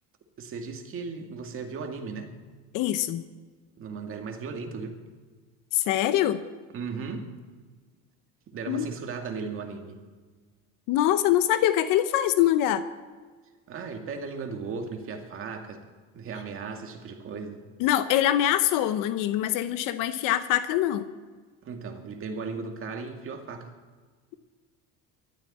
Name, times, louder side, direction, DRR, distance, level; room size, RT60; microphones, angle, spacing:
voice 1, 0.4-2.3 3.8-5.0 6.7-7.3 8.5-10.0 13.7-15.8 16.1-17.6 21.6-23.7, right 5 dB, 40° right, 4 dB, 2.1 m, -36 dB
voice 2, 2.7-3.2 5.7-6.4 8.7-8.9 10.9-12.8 17.8-21.1, left 12 dB, 70° left, 12 dB, 0.9 m, -24 dB
23.5 x 12.5 x 4.2 m, 1.5 s
cardioid pair, 155°, 33 cm